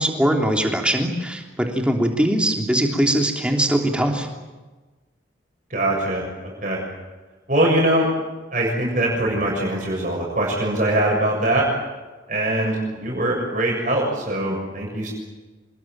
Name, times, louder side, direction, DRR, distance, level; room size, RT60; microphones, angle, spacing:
voice 1, 0.0-4.3, right 1 dB, 5° right, 2 dB, 3.2 m, -21 dB
voice 2, 5.7-6.8 7.5-8.1 8.5-11.7 12.3-15.1, right 1 dB, 45° right, -2 dB, 7.0 m, -22 dB
27.0 x 21.0 x 9.2 m, 1.2 s
head